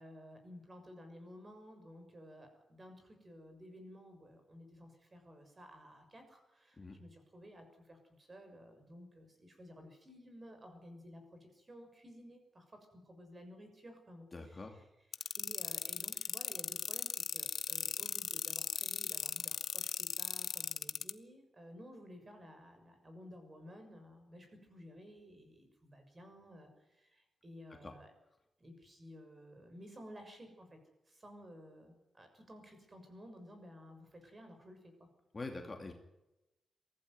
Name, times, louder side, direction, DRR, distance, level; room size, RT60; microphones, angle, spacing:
voice 1, 0.0-14.8 15.4-28.1 28.6-30.8 31.0-35.1, equal, 25° right, 6 dB, 6.6 m, -54 dB
voice 2, 14.3-14.8 15.2-15.3 27.8-27.9 35.3-35.9, left 3 dB, 25° left, 3 dB, 2.5 m, -45 dB
sound 1, 15.1-21.1, left 7 dB, 60° left, 0.9 m, -37 dB
23.5 x 15.5 x 9.6 m, 0.95 s
wide cardioid pair, 145°, 0 cm